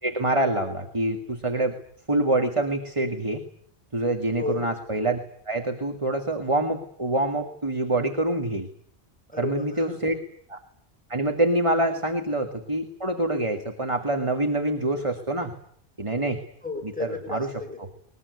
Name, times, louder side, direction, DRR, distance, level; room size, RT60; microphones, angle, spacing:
voice 1, 0.0-1.8 2.1-3.4 3.9-5.2 5.5-8.7 9.4-10.1 10.5-10.6 11.1-15.5 16.0-16.4 17.3-17.5, right 1 dB, 30° right, 4 dB, 2.2 m, -25 dB
voice 2, 9.3-10.2 11.7-12.0 16.6-17.8, left 3 dB, 5° left, 2 dB, 5.8 m, -34 dB
22.0 x 21.0 x 9.7 m, 0.63 s
omnidirectional pair, 1.1 m